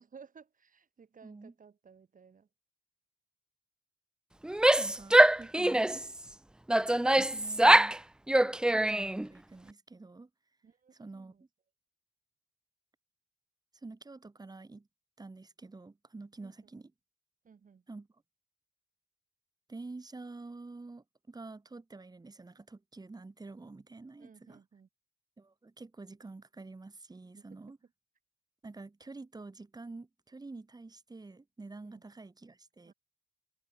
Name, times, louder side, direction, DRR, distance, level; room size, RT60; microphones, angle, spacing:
voice 1, 0.0-2.5 5.2-5.4 8.4-8.8 10.6-11.4 16.4-16.7 17.4-17.8 24.2-24.9 27.2-27.7 31.8-32.0 32.8-32.9, right 6 dB, 40° right, 6.9 m, -58 dB
voice 2, 1.2-1.5 4.8-5.9 7.3-8.0 8.7-10.3 11.0-11.3 13.8-14.9 15.2-16.9 17.9-18.1 19.7-24.6 25.4-27.8 28.6-32.9, right 3 dB, 20° right, 2.8 m, -48 dB
Female speech woman speaking / Yell, 4.4-6.1 6.7-8.0 8.3-9.3, right 1 dB, 5° right, 0.3 m, -23 dB
cardioid pair, 90°, 20 cm